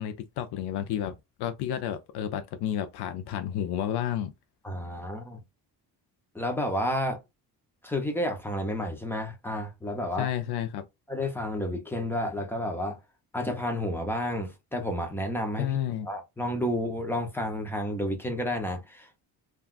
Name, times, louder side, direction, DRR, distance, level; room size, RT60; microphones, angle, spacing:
voice 1, 0.0-4.3 10.2-10.9 15.6-16.1, left 10 dB, 80° left, 0.5 m, -31 dB
voice 2, 4.6-5.4 6.3-7.2 7.8-10.3 11.1-13.0 13.3-15.8 16.0-19.2, left 1 dB, 5° left, 0.5 m, -31 dB
3.6 x 2.3 x 2.3 m
cardioid pair, 180°, 39 cm